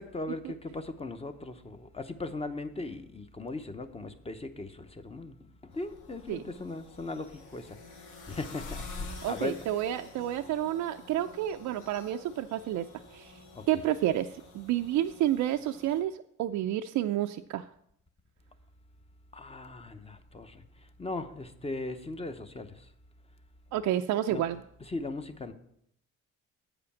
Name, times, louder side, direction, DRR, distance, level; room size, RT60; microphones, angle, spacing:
voice 1, 0.0-5.4 5.6-7.8 8.1-9.7 13.5-13.6 19.3-20.6 21.0-22.7 24.3-24.5 24.9-25.5, left 2 dB, 20° left, 0.8 m, -38 dB
sound 1, 5.7-16.0, left 3 dB, 80° left, 1.7 m, -47 dB
voice 2, 9.2-12.8 13.1-13.4 13.7-17.7 23.7-24.6, right 12 dB, 75° right, 0.4 m, -30 dB
8.3 x 5.0 x 7.1 m
cardioid pair, 90°, 30 cm